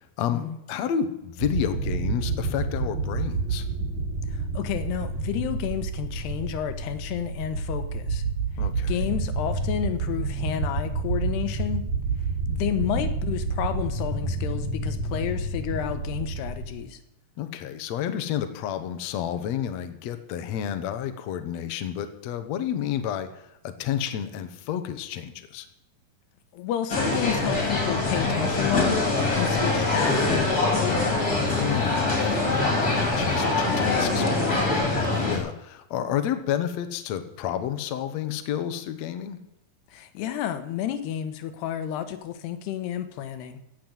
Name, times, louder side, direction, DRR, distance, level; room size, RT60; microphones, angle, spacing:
voice 1, 0.0-3.7 8.6-9.1 12.9-13.1 17.4-25.7 31.5-39.4, left 9 dB, 65° left, 9 dB, 1.8 m, -31 dB
sound 1, 1.4-16.7, right 3 dB, 45° right, 2.9 m, -29 dB
voice 2, 4.3-8.2 8.9-11.9 12.5-17.0 26.5-31.0 39.9-43.6, left 10 dB, 90° left, 10 dB, 3.2 m, -31 dB
sound 2, 26.9-35.4, left 3 dB, 25° left, 3.3 m, -24 dB
16.0 x 7.7 x 8.0 m, 0.87 s
omnidirectional pair, 4.6 m